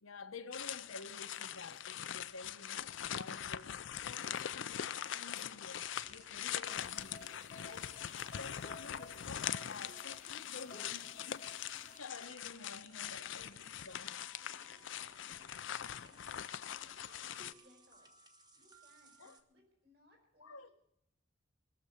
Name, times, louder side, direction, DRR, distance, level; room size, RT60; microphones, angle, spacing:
voice 1, 0.0-7.3 7.6-11.4 11.7-14.3 19.2-19.4 20.4-20.7, left 3 dB, 85° left, 1.0 m, -51 dB
sound 1, 0.5-17.5, left 10 dB, 65° left, 0.5 m, -42 dB
sound 2, 5.7-19.4, right 2 dB, 20° right, 1.0 m, -64 dB
voice 2, 5.9-6.9 7.8-8.2 14.3-18.1 18.5-19.1 19.5-20.7, left 1 dB, 55° right, 5.2 m, -69 dB
sound 3, 6.7-12.0, left 3 dB, 35° left, 0.9 m, -55 dB
21.0 x 7.0 x 8.3 m
head